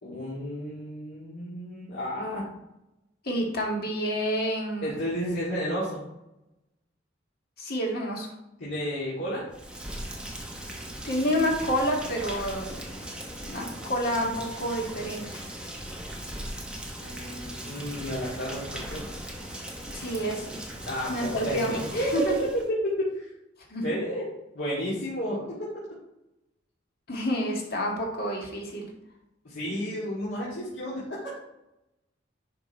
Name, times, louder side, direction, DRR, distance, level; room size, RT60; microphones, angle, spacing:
voice 1, 0.0-2.5 4.8-6.0 8.6-9.5 17.0-19.1 20.9-22.3 22.8-23.3 23.8-24.3 24.5-25.5 29.4-31.3, equal, 75° left, -7 dB, 2.1 m, -32 dB
voice 2, 3.2-4.9 7.6-8.3 11.0-13.0 13.3-15.3 19.9-20.6 21.1-22.3 23.7-23.8 27.1-28.9, equal, 50° left, -1 dB, 2.0 m, -29 dB
Rain, 9.5-22.7, right 1 dB, 5° right, 1.0 m, -39 dB
10.5 x 3.7 x 4.5 m, 0.91 s
head